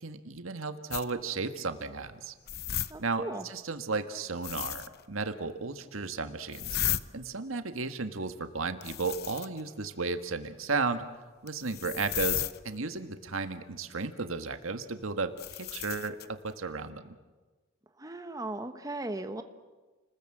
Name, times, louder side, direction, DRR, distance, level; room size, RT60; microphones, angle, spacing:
voice 1, 0.0-2.3 3.0-6.8 7.1-11.0 11.4-15.3 15.6-17.1, right 4 dB, 90° right, 8 dB, 1.6 m, -34 dB
sound 1, 0.9-1.1 2.5-2.9 4.4-5.0 6.5-7.0 8.8-9.6 11.5-12.6 15.4-16.3, left 11 dB, 50° left, 0.8 m, -34 dB
voice 2, 2.9-3.4 18.0-19.4, right 2 dB, 20° right, 7 dB, 1.2 m, -37 dB
30.0 x 20.5 x 7.9 m, 1.3 s
head